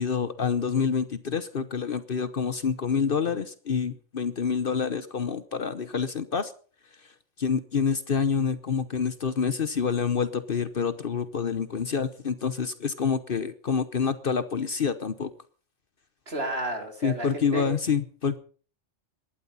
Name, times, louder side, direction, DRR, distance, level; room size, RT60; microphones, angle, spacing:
voice 1, 0.0-6.5 7.4-15.3 17.0-18.4, left 6 dB, 50° left, 13 dB, 1.0 m, -27 dB
voice 2, 16.3-17.7, right 2 dB, 55° right, 3 dB, 3.7 m, -32 dB
18.0 x 12.0 x 5.6 m, 0.42 s
omnidirectional pair, 1.3 m